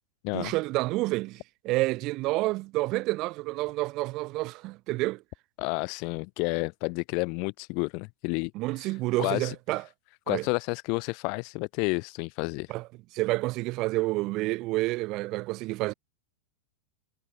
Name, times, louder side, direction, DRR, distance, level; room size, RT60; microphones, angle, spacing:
voice 1, 0.3-5.2 8.5-9.8 10.3-10.5 12.7-15.9, right 20 dB, 45° right, 6.2 m, -29 dB
voice 2, 5.6-8.5 9.2-9.5 10.3-12.7, left 34 dB, 50° left, 6.8 m, -30 dB
hypercardioid pair, 120°, 0 cm